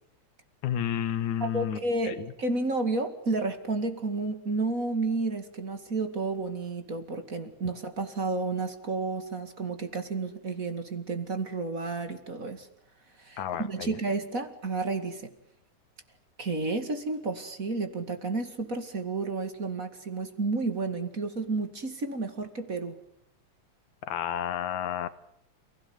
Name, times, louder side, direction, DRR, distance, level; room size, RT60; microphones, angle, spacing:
voice 1, 0.6-2.3 13.4-14.0 24.0-25.1, left 9 dB, 85° left, 13 dB, 2.8 m, -31 dB
voice 2, 1.4-12.7 13.2-15.3 16.4-23.0, right 3 dB, 30° right, 8 dB, 2.3 m, -31 dB
29.5 x 17.0 x 9.7 m, 0.79 s
omnidirectional pair, 3.3 m